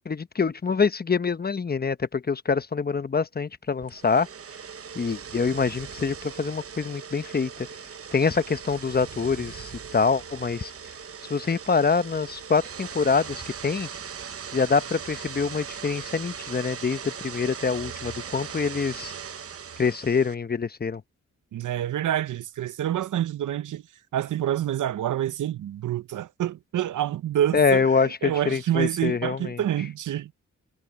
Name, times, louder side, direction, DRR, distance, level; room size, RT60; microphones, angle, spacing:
voice 1, 0.1-4.3 5.0-7.5 8.1-10.7 11.3-13.9 14.5-19.1 19.8-21.0 27.5-29.6, left 5 dB, 30° left, 1.0 m, -25 dB
sound 1, 3.8-20.4, right 7 dB, 50° right, 0.9 m, -39 dB
voice 2, 21.5-23.8 24.1-30.3, right 11 dB, 75° right, 0.7 m, -27 dB
cardioid pair, 75°, 31 cm